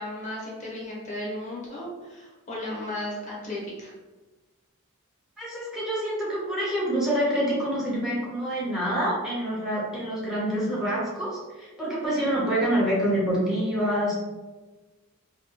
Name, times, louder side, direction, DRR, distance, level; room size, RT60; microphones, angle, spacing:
voice 1, 0.0-3.9, left 1 dB, 35° left, -4 dB, 0.7 m, -35 dB
voice 2, 5.4-14.1, equal, ahead, -6 dB, 0.7 m, -26 dB
2.8 x 2.7 x 2.8 m, 1.2 s
head